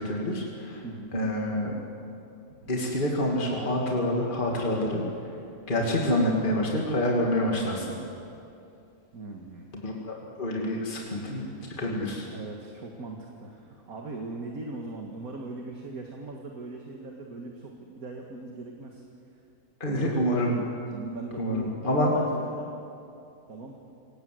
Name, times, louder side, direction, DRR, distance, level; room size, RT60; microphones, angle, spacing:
voice 1, 0.0-0.8 1.1-1.8 2.7-5.0 5.7-7.9 9.7-11.5 11.8-12.3 19.8-20.6 21.4-22.1, left 1 dB, 30° left, -2 dB, 2.7 m, -27 dB
voice 2, 0.8-1.1 2.6-2.7 9.1-9.7 12.3-19.0 19.9-20.1 20.9-22.7 23.5-23.8, right 3 dB, 65° right, 1 dB, 2.2 m, -40 dB
27.0 x 18.5 x 7.8 m, 2.6 s
omnidirectional pair, 1.6 m